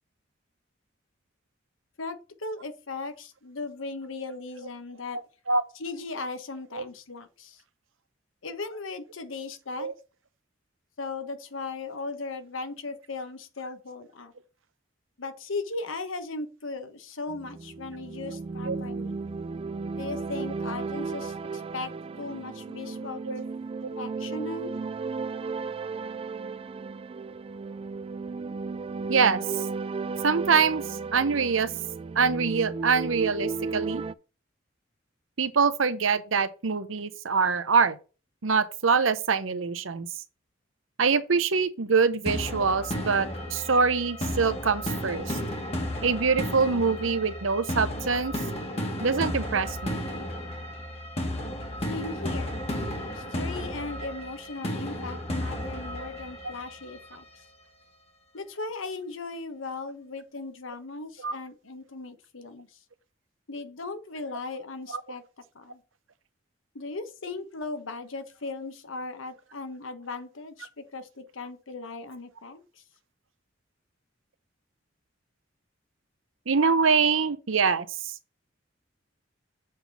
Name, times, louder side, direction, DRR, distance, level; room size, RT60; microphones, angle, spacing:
voice 1, 2.0-5.2 5.7-7.6 8.4-9.9 11.0-14.3 15.2-19.2 19.9-21.9 22.2-23.4 24.0-24.7 51.9-52.6 53.1-57.4 58.3-62.7 63.5-65.2 65.5-65.8 66.7-72.8, left 3 dB, 90° left, 1.2 m, -37 dB
sound 1, 17.3-34.1, right 4 dB, 30° right, 0.3 m, -35 dB
voice 2, 29.1-29.4 30.2-30.8 31.1-31.7 32.2-34.0 35.4-38.0 38.4-40.1 41.0-45.4 46.0-48.3 49.0-50.0 61.2-61.3 76.5-77.9, right 5 dB, 80° right, 0.8 m, -24 dB
sound 2, 42.3-57.2, left 1 dB, 35° left, 1.7 m, -33 dB
7.7 x 4.0 x 5.7 m
head